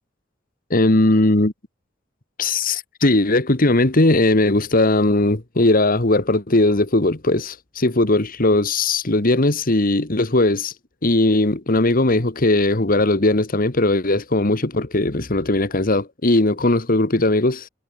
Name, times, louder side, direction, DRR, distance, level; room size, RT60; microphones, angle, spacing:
voice 1, 0.7-1.5 2.4-10.7 11.0-17.7, left 2 dB, 45° left, 1.7 m, -18 dB
head